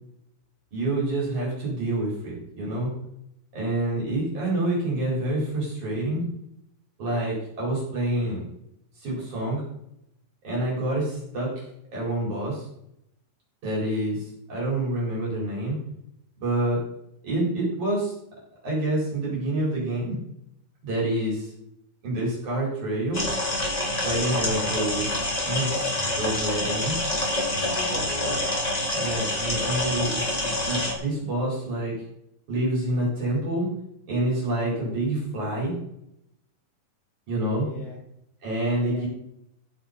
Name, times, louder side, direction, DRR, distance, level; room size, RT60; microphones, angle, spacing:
voice 1, 0.7-2.9 3.5-6.2 7.0-8.4 9.0-9.6 10.4-11.6 11.9-12.7 13.6-15.8 16.4-16.8 17.2-18.1 18.6-20.2 20.8-21.5 22.0-23.3 24.0-26.9 28.9-32.0 32.5-33.7 34.1-35.8 37.3-37.7 38.4-39.1, right 1 dB, 60° right, -5 dB, 5.5 m, -27 dB
sound 1, 23.1-30.9, left 1 dB, 20° left, 1.1 m, -27 dB
voice 2, 27.6-28.6 37.5-38.0 38.7-39.1, left 2 dB, 75° left, -5 dB, 6.6 m, -38 dB
14.0 x 8.7 x 4.0 m, 0.78 s
omnidirectional pair, 3.9 m